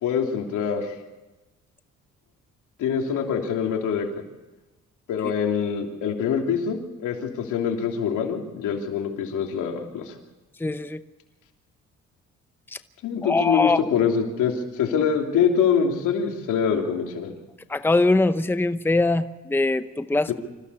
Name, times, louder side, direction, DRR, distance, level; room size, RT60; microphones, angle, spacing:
voice 1, 0.0-0.9 2.8-4.1 5.1-10.1 13.0-17.3 20.3-20.4, left 7 dB, 85° left, 2 dB, 3.2 m, -24 dB
voice 2, 10.6-11.0 13.2-13.8 17.7-20.3, left 2 dB, 5° left, 11 dB, 0.8 m, -22 dB
26.0 x 15.5 x 7.0 m, 1.1 s
cardioid pair, 90°, 30 cm